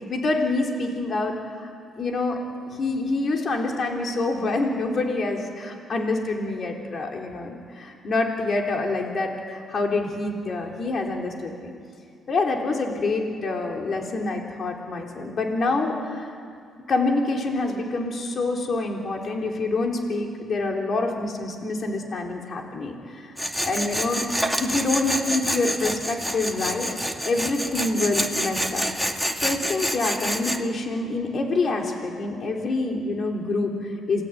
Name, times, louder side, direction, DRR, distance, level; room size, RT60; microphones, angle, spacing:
voice 1, 0.1-1.7 2.0-2.4 2.7-11.7 12.3-16.4 16.9-23.3 23.6-24.3 24.6-26.9 27.2-28.8 29.4-34.2, left 3 dB, 50° left, 1 dB, 3.8 m, -26 dB
Tools, 23.4-30.6, equal, 5° left, 2.2 m, -27 dB
28.0 x 19.0 x 9.6 m, 2.3 s
cardioid pair, 90°, 0 cm